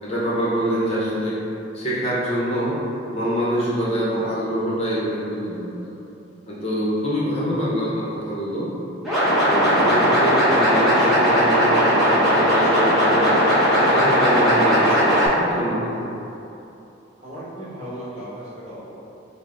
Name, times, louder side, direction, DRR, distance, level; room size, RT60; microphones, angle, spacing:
voice 1, 0.0-1.4 1.7-2.8 3.1-5.9 6.5-8.7 9.4-13.4 13.8-16.0, equal, 35° left, -7 dB, 0.7 m, -25 dB
sound 1, 9.0-15.3, equal, ahead, 1.1 m, -18 dB
voice 2, 17.2-18.9, right 1 dB, 35° right, -9 dB, 1.1 m, -36 dB
5.4 x 2.0 x 3.7 m, 2.8 s
head